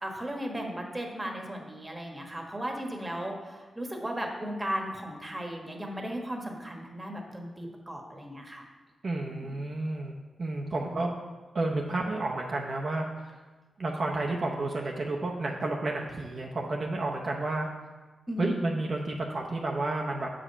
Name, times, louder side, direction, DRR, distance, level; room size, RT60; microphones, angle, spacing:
voice 1, 0.0-8.6 9.3-9.5 10.8-11.1 18.3-18.7, equal, 15° right, 1 dB, 1.3 m, -36 dB
voice 2, 9.0-11.1 11.5-13.4 13.8-17.7 18.4-20.3, right 2 dB, 45° right, 0 dB, 0.7 m, -31 dB
7.4 x 5.1 x 5.5 m, 1.2 s
wide cardioid pair, 105°, 0 cm